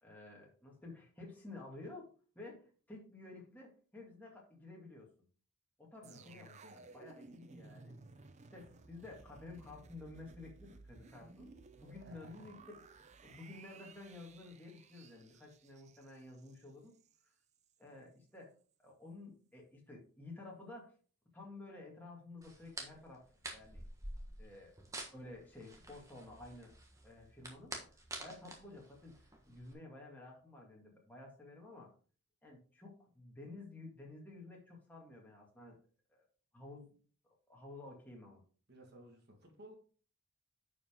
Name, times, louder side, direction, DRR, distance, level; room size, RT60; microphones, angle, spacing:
voice 1, 0.0-2.1 2.3-5.1 5.8-6.5 6.9-8.0 8.5-12.6 12.9-16.9 17.8-18.5 18.8-20.9 21.3-23.2 23.5-23.8 24.4-24.7 25.1-26.7 27.0-31.9 32.4-35.8 36.1-36.2 36.5-36.9 37.2-38.4, left 2 dB, 10° left, -3 dB, 2.0 m, -52 dB
sound 1, 6.0-17.2 17.5-17.7, right 3 dB, 30° right, 0.5 m, -58 dB
voice 2, 6.0-6.8 12.0-12.5 38.7-39.7, equal, 45° right, 2 dB, 1.7 m, -57 dB
sound 2, 22.4-29.7, right 2 dB, 15° right, 1.2 m, -49 dB
10.0 x 5.1 x 3.6 m, 0.41 s
head